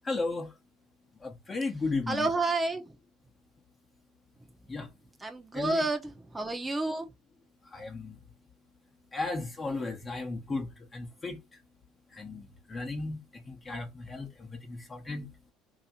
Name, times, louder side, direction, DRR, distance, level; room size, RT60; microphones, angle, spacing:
voice 1, 0.0-0.5 1.2-2.3 4.7-4.9 5.5-5.9 7.6-8.2 9.1-11.4 12.1-15.3, left 3 dB, 25° left, 1.1 m, -35 dB
voice 2, 2.1-2.8 5.2-6.0 6.3-7.1, right 2 dB, 15° right, 1.0 m, -29 dB
3.2 x 2.9 x 2.7 m
supercardioid pair, 85°, 0 cm